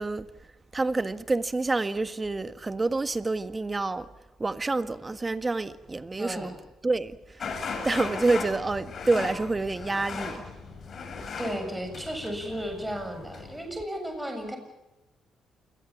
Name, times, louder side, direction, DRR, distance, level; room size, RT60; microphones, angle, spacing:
voice 1, 0.0-4.1 4.4-6.6 6.8-7.5 7.8-10.4, right 3 dB, 25° right, 1.6 m, -28 dB
voice 2, 6.2-6.5 11.4-14.6, equal, 5° right, 7.5 m, -34 dB
sound 1, 7.4-13.7, left 4 dB, 50° left, 7.8 m, -37 dB
28.5 x 22.0 x 7.3 m
cardioid pair, 90°, 0 cm